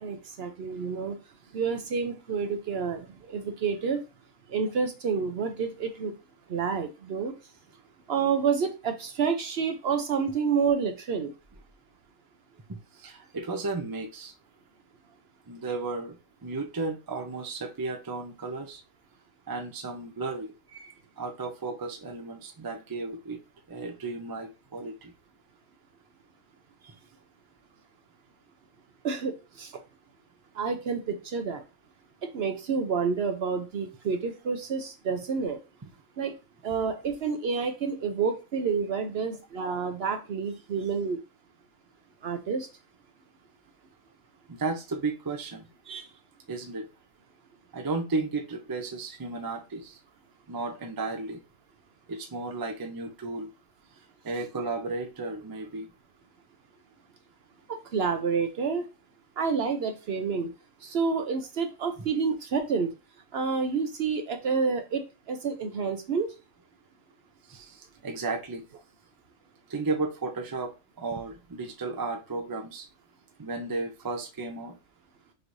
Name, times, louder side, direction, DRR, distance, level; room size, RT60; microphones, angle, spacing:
voice 1, 0.0-1.2 1.5-4.0 4.5-6.1 6.5-7.3 8.1-11.3 20.8-20.9 29.0-29.7 30.6-31.6 32.3-35.6 36.2-36.3 36.6-41.2 42.2-42.7 45.9-46.1 57.9-58.8 59.4-60.5 60.8-62.9 63.3-65.0 65.3-66.3, right 5 dB, 60° right, 6 dB, 0.8 m, -29 dB
voice 2, 12.7-14.3 15.5-16.2 16.4-18.8 19.5-20.5 21.2-23.4 23.7-25.1 44.5-45.7 46.5-46.9 47.7-50.0 50.5-51.4 52.1-53.5 54.2-55.9 62.0-62.1 67.5-68.6 69.7-72.8 73.4-74.7, right 3 dB, 30° right, 4 dB, 0.4 m, -34 dB
6.0 x 3.1 x 2.6 m, 0.29 s
omnidirectional pair, 1.4 m